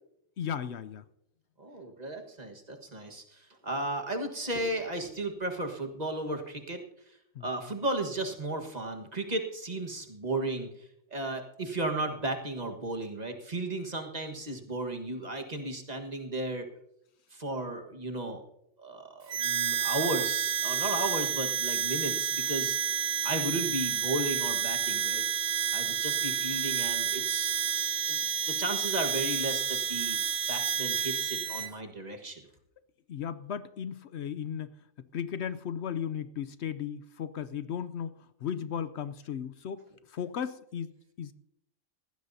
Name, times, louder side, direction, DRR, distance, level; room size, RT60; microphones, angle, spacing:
voice 1, 0.4-1.0 7.4-7.5 33.1-34.7 35.1-38.1 38.4-39.8 40.1-40.9 41.2-41.3, left 8 dB, 70° left, 13 dB, 0.9 m, -35 dB
voice 2, 1.6-6.8 7.4-16.7 17.3-18.4 18.8-22.9 23.2-25.2 25.7-27.5 28.1-30.2 30.5-32.4, right 2 dB, 35° right, 4 dB, 1.6 m, -34 dB
Harmonica, 19.3-31.7, right 9 dB, 55° right, 0.9 m, -30 dB
19.5 x 16.0 x 2.7 m, 0.80 s
omnidirectional pair, 1.3 m